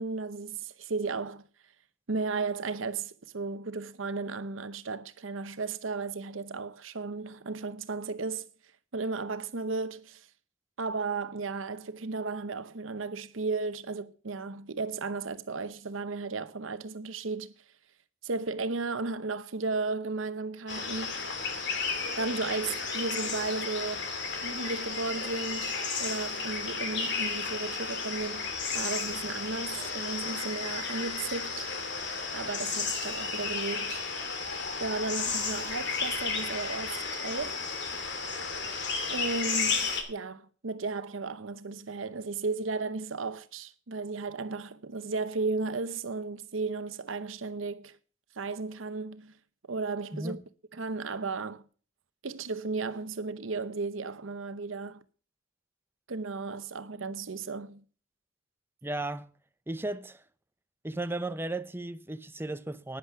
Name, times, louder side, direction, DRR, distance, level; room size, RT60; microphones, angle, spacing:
voice 1, 0.0-1.5 2.1-8.5 8.9-10.3 10.8-17.5 18.2-21.3 22.1-24.1 24.4-31.7 32.3-34.0 34.8-37.7 39.1-48.0 48.4-49.3 49.7-50.4 50.7-51.6 52.2-55.0 56.1-57.8, right 3 dB, 85° right, 0.9 m, -34 dB
sound 1, 20.7-40.0, left 4 dB, 65° left, 2.7 m, -33 dB
voice 2, 50.1-50.4 58.8-59.3 59.7-60.2 60.8-63.0, right 2 dB, 10° right, 0.7 m, -35 dB
11.0 x 9.9 x 5.9 m
head